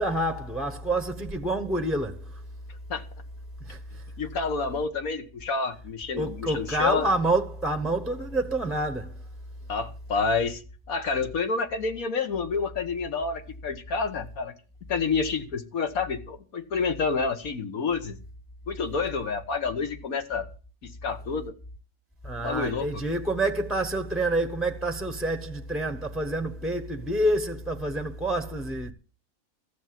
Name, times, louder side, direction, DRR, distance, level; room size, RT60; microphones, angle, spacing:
voice 1, 0.0-2.4 3.6-4.0 6.1-9.2 22.2-28.9, right 1 dB, ahead, 0.7 m, -28 dB
voice 2, 4.2-7.1 9.7-10.6 10.9-14.5 14.9-18.2 18.7-20.5 20.8-21.5 22.4-23.0, left 4 dB, 85° left, 1.8 m, -29 dB
14.0 x 7.0 x 7.6 m
omnidirectional pair, 1.5 m